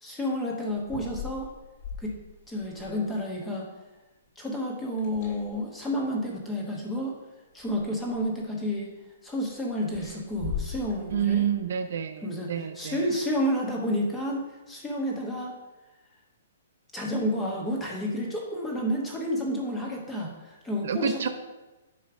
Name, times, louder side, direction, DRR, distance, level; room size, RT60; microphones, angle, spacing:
voice 1, 0.0-1.5 2.0-2.1 2.5-3.7 4.4-7.2 7.5-8.9 9.2-11.4 12.2-15.5 16.9-21.3, equal, 5° left, -1 dB, 1.1 m, -30 dB
sound 1, 0.7-3.2 4.9-5.8 6.9-7.0 7.5-8.4 9.9-11.6, left 6 dB, 40° left, 1.8 m, -39 dB
voice 2, 11.1-13.1 20.8-21.3, right 9 dB, 55° right, 9 dB, 0.5 m, -28 dB
9.4 x 3.1 x 6.0 m, 1.1 s
hypercardioid pair, 170°, 0 cm